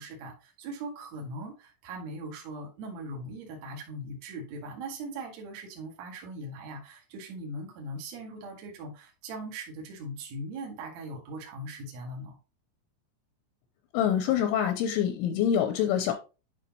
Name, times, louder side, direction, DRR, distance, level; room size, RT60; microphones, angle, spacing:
voice 1, 0.0-12.4, right 1 dB, 55° right, 0 dB, 2.0 m, -40 dB
voice 2, 13.9-16.1, left 9 dB, 80° left, 7 dB, 2.9 m, -25 dB
11.0 x 4.8 x 2.9 m, 0.31 s
omnidirectional pair, 5.8 m